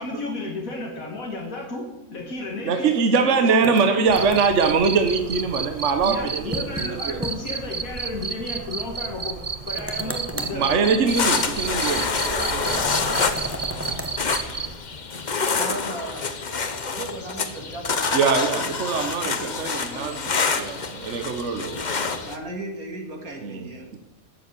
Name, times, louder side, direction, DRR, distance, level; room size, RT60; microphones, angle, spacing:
voice 1, 0.0-4.0 6.0-9.4 9.7-10.6, left 2 dB, 75° left, 0 dB, 2.2 m, -33 dB
voice 2, 2.6-7.2 10.1-10.2 10.5-13.2 18.1-21.8 23.4-24.0, right 5 dB, 60° right, 6 dB, 1.3 m, -23 dB
sound 1, 3.6-4.7 6.5-6.9 7.2-7.4 7.7-7.8 9.8-10.6 12.6-14.1, equal, 10° right, 0.9 m, -33 dB
Cricket, 4.1-14.7, right 5 dB, 40° right, 0.5 m, -32 dB
sound 2, 11.1-22.4, left 5 dB, 35° left, 0.9 m, -27 dB
voice 3, 15.6-16.4 16.8-18.7 19.1-20.5 22.2-23.9, right 2 dB, 85° right, 2 dB, 2.7 m, -37 dB
12.5 x 7.2 x 8.3 m, 1.0 s
omnidirectional pair, 1.5 m